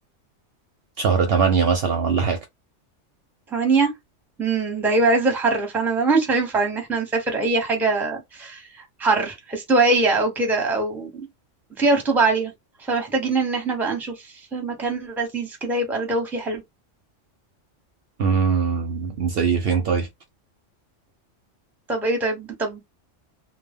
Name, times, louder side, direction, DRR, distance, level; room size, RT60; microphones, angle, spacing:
voice 1, 1.0-2.4 18.2-20.1, right 6 dB, 65° right, 0.7 m, -21 dB
voice 2, 3.5-3.9 4.4-8.6 9.0-11.3 11.8-12.5 12.9-14.1 14.5-16.6 21.9-22.8, right 3 dB, ahead, 0.6 m, -22 dB
2.1 x 2.1 x 3.4 m
omnidirectional pair, 1.3 m